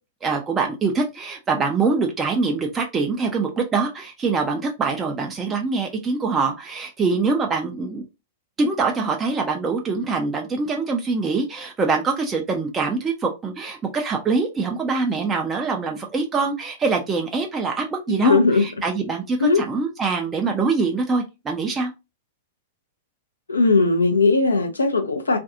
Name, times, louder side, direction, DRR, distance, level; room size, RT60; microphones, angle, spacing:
voice 1, 0.2-8.0 8.6-19.4 19.7-21.9, right 4 dB, 20° right, 0.4 m, -24 dB
voice 2, 18.1-18.7 19.4-19.6 23.5-25.4, left 3 dB, 80° left, 0.5 m, -18 dB
2.5 x 2.3 x 2.6 m
figure-of-eight pair, 100°, 0 cm